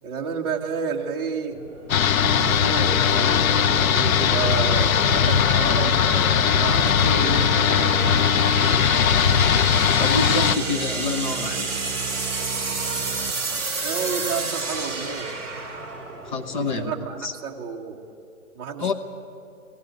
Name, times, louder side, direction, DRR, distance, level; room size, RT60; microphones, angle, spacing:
voice 1, 0.0-1.6 2.3-6.0 6.6-8.0 13.8-15.3 16.6-18.0 18.5-18.9, right 6 dB, 15° right, -2 dB, 1.1 m, -30 dB
sound 1, 1.5-16.9, right 3 dB, 5° left, 2.2 m, -32 dB
sound 2, 1.9-10.6, left 8 dB, 70° left, 0.6 m, -19 dB
sound 3, 2.2-13.9, right 10 dB, 80° right, 0.6 m, -36 dB
voice 2, 10.0-11.7 16.2-16.9 17.2-17.3 18.8-18.9, left 3 dB, 35° left, 7 dB, 1.1 m, -27 dB
18.0 x 16.5 x 9.2 m, 2.7 s
hypercardioid pair, 160°, 43 cm